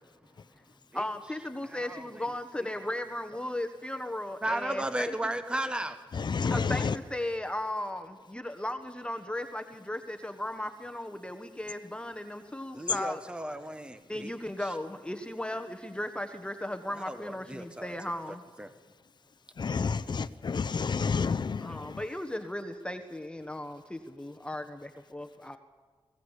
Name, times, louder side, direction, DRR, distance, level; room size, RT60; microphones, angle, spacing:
voice 1, 0.9-5.1 6.4-13.2 14.1-18.4 21.6-25.6, left 1 dB, 10° left, 6 dB, 1.3 m, -36 dB
voice 2, 1.7-2.2 4.4-6.0 12.7-14.3 16.9-17.9 18.6-18.7, right 1 dB, 10° right, 9 dB, 1.2 m, -35 dB
voice 3, 6.2-6.9 19.6-22.0, left 5 dB, 50° left, 13 dB, 0.8 m, -29 dB
21.0 x 17.5 x 8.2 m, 1.4 s
cardioid pair, 80°, 9 cm